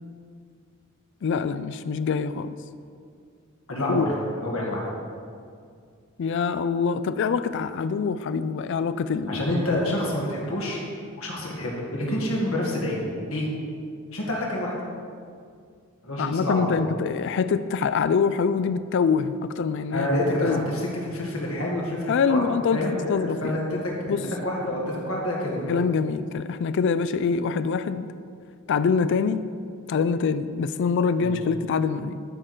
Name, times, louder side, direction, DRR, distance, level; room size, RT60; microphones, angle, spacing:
voice 1, 1.2-2.6 3.9-4.1 6.2-9.5 16.2-20.1 20.4-20.7 22.1-22.8 23.1-23.6 24.1-24.2 25.7-28.1 28.7-29.4 29.9-32.2, left 5 dB, 60° left, 13 dB, 0.4 m, -25 dB
voice 2, 3.7-4.0 4.4-4.8 9.3-10.8 11.2-13.5 14.1-14.7 16.0-16.8 19.9-22.4 22.7-23.8 24.4-25.8 31.2-31.3, left 1 dB, 80° left, -3 dB, 2.0 m, -27 dB
12.5 x 4.5 x 4.9 m, 2.3 s
head